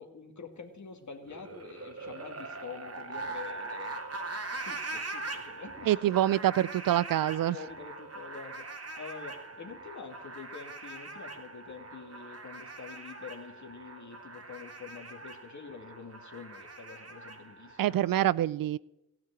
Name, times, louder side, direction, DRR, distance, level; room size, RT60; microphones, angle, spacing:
voice 1, 0.0-4.0 4.6-6.4 7.5-8.7 9.0-17.8, left 5 dB, 35° left, 5 dB, 2.6 m, -46 dB
sound 1, 1.2-18.2, right 3 dB, 30° right, 2.3 m, -42 dB
voice 2, 5.9-7.6 17.8-18.8, right 13 dB, 45° right, 22 dB, 0.5 m, -26 dB
16.0 x 5.9 x 9.9 m, 0.92 s
hypercardioid pair, 45°, 47 cm